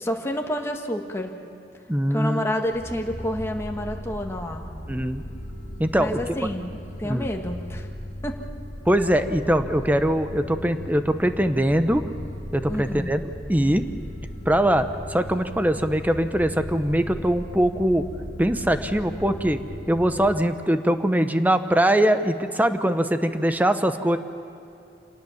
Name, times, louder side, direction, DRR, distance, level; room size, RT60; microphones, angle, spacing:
voice 1, 0.0-1.3 2.1-4.6 5.9-7.9 8.2-8.4 12.7-13.1, equal, 15° left, 2 dB, 1.6 m, -29 dB
voice 2, 1.9-2.5 4.9-5.2 5.8-6.2 7.0-7.3 8.9-12.0 12.5-13.8 14.5-14.8 15.1-18.0 18.4-19.6 19.9-24.2, right 1 dB, 10° right, 9 dB, 0.9 m, -22 dB
sound 1, 2.7-20.5, equal, 45° left, 1.7 m, -37 dB
26.5 x 18.5 x 7.2 m, 2.8 s
head